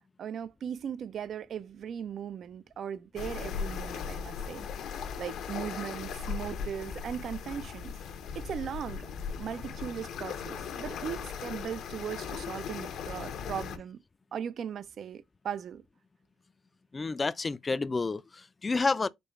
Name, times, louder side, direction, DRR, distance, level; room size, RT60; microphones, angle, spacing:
voice 1, 0.0-7.9 8.3-9.1 9.4-14.0 14.3-15.8, right 8 dB, 60° right, 0.4 m, -38 dB
sound 1, 3.2-13.8, left 7 dB, 80° left, 0.9 m, -38 dB
voice 2, 16.9-19.1, left 3 dB, 30° left, 0.3 m, -30 dB
5.2 x 2.3 x 4.4 m
cardioid pair, 90°, 0 cm